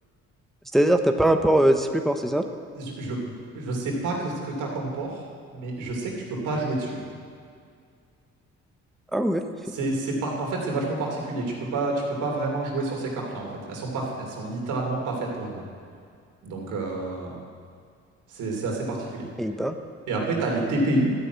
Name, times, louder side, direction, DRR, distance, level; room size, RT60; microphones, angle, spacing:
voice 1, 0.7-2.4 9.1-9.4 19.4-19.8, right 1 dB, ahead, 6 dB, 0.7 m, -21 dB
voice 2, 2.7-3.2 3.5-5.2 5.5-7.0 9.7-15.6 16.4-17.4 18.3-19.3 20.1-21.1, right 2 dB, 85° right, -1 dB, 3.1 m, -28 dB
12.5 x 6.9 x 9.3 m, 2.2 s
cardioid pair, 90°, 30 cm